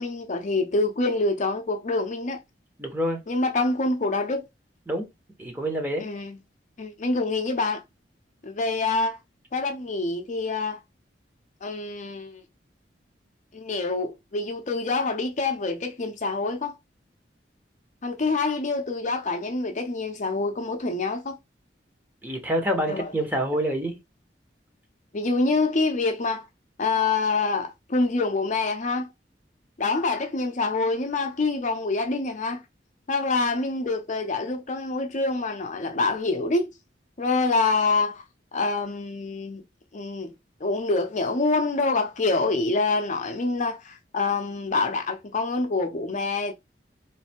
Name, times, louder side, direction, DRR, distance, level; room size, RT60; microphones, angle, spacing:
voice 1, 0.0-2.4 3.3-4.4 6.0-6.4 6.8-7.8 8.4-9.2 9.5-10.8 11.6-12.4 13.5-16.8 18.0-21.4 22.9-23.1 25.1-26.4 26.8-29.1 29.8-32.6 33.1-36.7 37.2-38.2 38.5-39.6 39.9-40.3 40.6-46.5, left 3 dB, 45° left, 0.6 m, -26 dB
voice 2, 2.8-3.2 4.9-5.0 5.4-6.0 22.2-24.0, equal, 10° right, 0.9 m, -27 dB
3.2 x 2.7 x 4.3 m
head